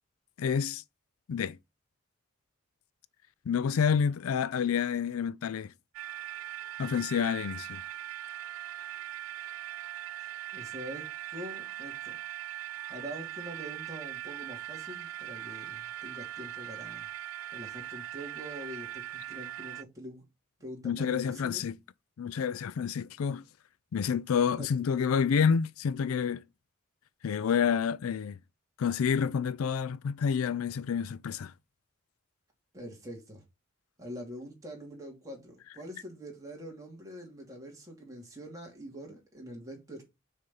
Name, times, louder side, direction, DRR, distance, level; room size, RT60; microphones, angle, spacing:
voice 1, 0.4-0.8 1.3-1.6 3.5-5.7 6.8-7.8 20.8-21.8 22.2-23.4 23.9-26.4 27.2-28.4 28.8-31.5, left 7 dB, 85° left, 0.4 m, -28 dB
sound 1, 5.9-19.8, right 12 dB, 70° right, 0.3 m, -40 dB
voice 2, 10.5-12.2 12.9-17.1 17.5-20.2 20.6-21.6 24.6-24.7 32.7-33.4 34.0-40.0, equal, 15° right, 2.7 m, -44 dB
6.3 x 4.3 x 5.4 m
head